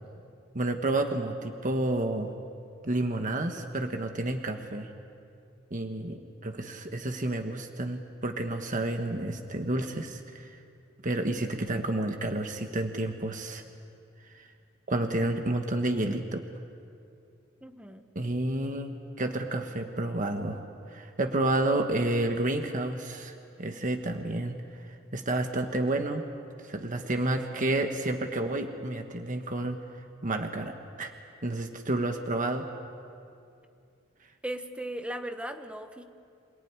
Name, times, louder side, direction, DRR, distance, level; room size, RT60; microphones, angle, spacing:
voice 1, 0.5-2.3 2.8-4.9 5.7-10.6 11.0-13.6 14.4-14.5 14.9-16.4 18.1-20.6 20.9-24.6 24.9-26.2 26.6-29.8 30.2-31.1 31.4-32.7, right 2 dB, 40° right, 5 dB, 1.4 m, -30 dB
voice 2, 17.6-18.1 34.4-36.0, right 1 dB, 5° right, 6 dB, 1.3 m, -37 dB
27.0 x 18.5 x 9.7 m, 2.5 s
head